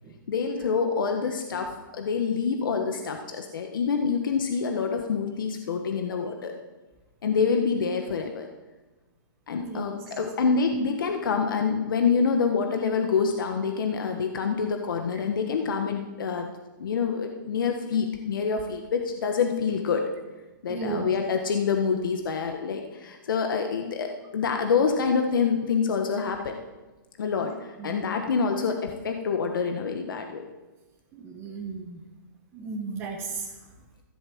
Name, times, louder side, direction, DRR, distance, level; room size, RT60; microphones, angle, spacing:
voice 1, 0.3-6.5 7.2-8.5 9.5-16.5 16.8-20.1 20.6-26.6 27.2-30.5, left 5 dB, 75° left, 4 dB, 1.5 m, -26 dB
voice 2, 9.6-9.9 20.7-21.1 27.4-27.5 27.8-28.0 31.1-32.0 32.5-33.5, right 4 dB, 20° right, -1 dB, 1.5 m, -35 dB
14.5 x 7.9 x 7.8 m, 1.2 s
hypercardioid pair, 160°, 11 cm